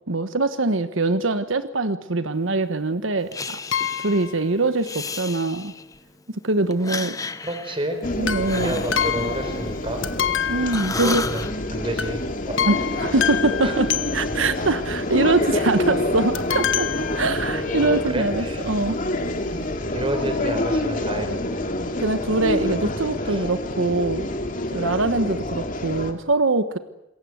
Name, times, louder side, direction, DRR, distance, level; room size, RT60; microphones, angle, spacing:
voice 1, 0.1-3.6 4.0-5.7 6.4-7.2 8.2-8.8 10.5-11.2 12.6-13.9 14.1-19.0 22.0-24.3 24.7-26.8, right 2 dB, 85° right, 10 dB, 1.3 m, -23 dB
Breathing, 3.3-4.3 4.8-6.0 6.7-10.3 10.6-11.5, left 4 dB, 15° left, 0.9 m, -33 dB
sound 1, 3.7-4.4 8.2-9.8 10.0-11.5 12.0-12.2 12.6-14.6 16.3-17.8 18.5-18.6 18.8-18.9, left 9 dB, 80° left, 1.6 m, -28 dB
voice 2, 7.4-8.0 8.5-10.0 10.9-12.8 13.6-13.8 17.8-18.6 19.9-21.6 23.3-23.5, right 1 dB, 25° right, 8 dB, 4.7 m, -30 dB
sound 2, 8.0-26.1, left 1 dB, 45° left, 2.7 m, -27 dB
28.0 x 23.0 x 8.1 m, 0.88 s
head